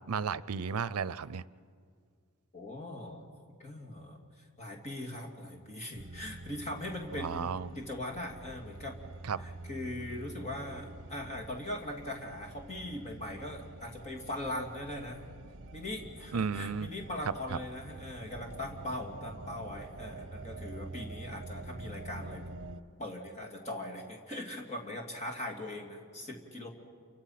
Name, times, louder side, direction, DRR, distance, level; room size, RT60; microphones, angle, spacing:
voice 1, 0.1-1.4 7.1-7.7 9.2-9.4 16.3-16.9, right 6 dB, 85° right, 18 dB, 0.5 m, -33 dB
voice 2, 2.5-3.3 3.6-9.0 9.4-15.3 15.7-22.4 23.0-26.7, left 1 dB, 30° left, 1 dB, 2.8 m, -40 dB
sound 1, 5.9-22.8, right 2 dB, 55° right, 0.9 m, -47 dB
28.5 x 25.5 x 5.9 m, 2.1 s
head